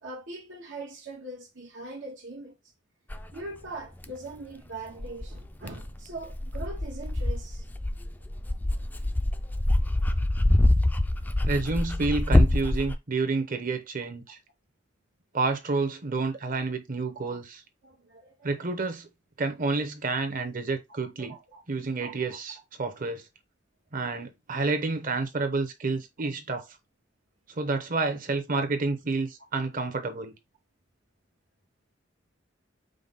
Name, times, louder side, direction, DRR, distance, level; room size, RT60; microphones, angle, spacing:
voice 1, 0.0-2.5 3.3-7.6 17.2-17.4 17.8-18.5 21.2-21.6 22.0-22.3, right 2 dB, 85° right, 1.2 m, -41 dB
Dog, 3.1-3.2 4.0-4.1 5.0-12.9, left 1 dB, 10° left, 0.3 m, -25 dB
voice 2, 11.5-14.4 15.3-17.6 18.4-19.1 19.4-21.3 21.7-23.2 23.9-26.7 27.5-30.3, right 3 dB, 45° right, 0.9 m, -29 dB
5.1 x 2.2 x 3.9 m
head